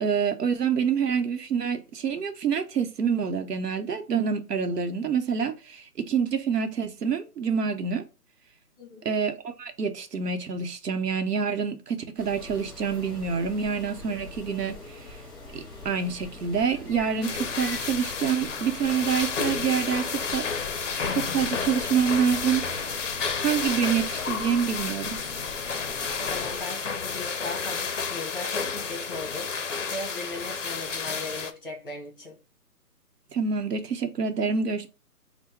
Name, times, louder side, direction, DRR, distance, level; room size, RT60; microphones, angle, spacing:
voice 1, 0.0-8.0 9.0-15.2 15.5-20.5 21.1-22.6 22.9-23.1 23.4-25.2 33.3-34.9, right 6 dB, 85° right, 0.9 m, -27 dB
sound 1, 12.2-26.6, left 2 dB, 15° left, 1.4 m, -44 dB
sound 2, 17.2-31.5, left 5 dB, 50° left, 0.6 m, -31 dB
voice 2, 26.2-29.5 29.9-32.4, left 2 dB, 35° left, 1.0 m, -37 dB
3.6 x 2.2 x 4.4 m
hypercardioid pair, 170°, 47 cm